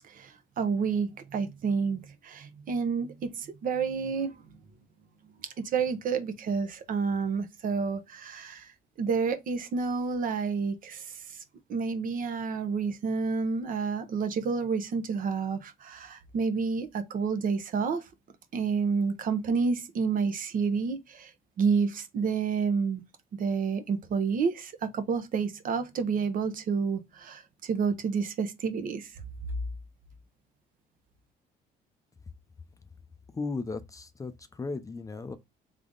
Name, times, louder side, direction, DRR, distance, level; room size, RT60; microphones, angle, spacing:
voice 1, 0.1-4.3 5.4-8.7 9.0-11.4 11.7-18.1 18.5-21.3 21.6-23.0 23.3-29.1, right 5 dB, 55° right, 1.0 m, -29 dB
voice 2, 33.3-35.3, left 3 dB, 20° left, 0.5 m, -36 dB
3.6 x 3.5 x 3.8 m
cardioid pair, 110°, 17 cm